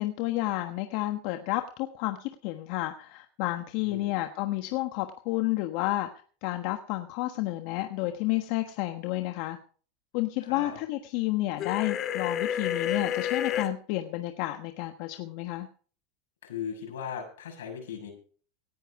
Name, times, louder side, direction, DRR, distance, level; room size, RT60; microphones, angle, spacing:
voice 1, 0.0-6.1 6.4-9.6 10.1-15.7, left 17 dB, 60° left, 7 dB, 1.3 m, -31 dB
voice 2, 3.8-4.1 10.4-10.8 16.4-18.1, left 7 dB, 90° left, 3 dB, 6.4 m, -38 dB
sound 1, 11.6-13.7, left 9 dB, 40° left, 2.1 m, -30 dB
18.0 x 9.9 x 4.9 m, 0.43 s
supercardioid pair, 115°, 0 cm